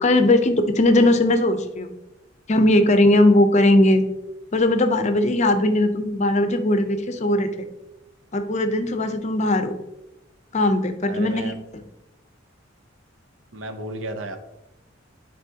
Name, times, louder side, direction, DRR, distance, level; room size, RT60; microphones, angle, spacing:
voice 1, 0.0-1.9 2.5-4.0 4.5-7.7 8.3-9.7 10.5-11.8, left 1 dB, 35° left, 8 dB, 0.6 m, -19 dB
voice 2, 11.1-11.6 13.5-14.4, right 1 dB, 90° right, 7 dB, 0.7 m, -33 dB
9.8 x 4.1 x 2.8 m, 0.93 s
head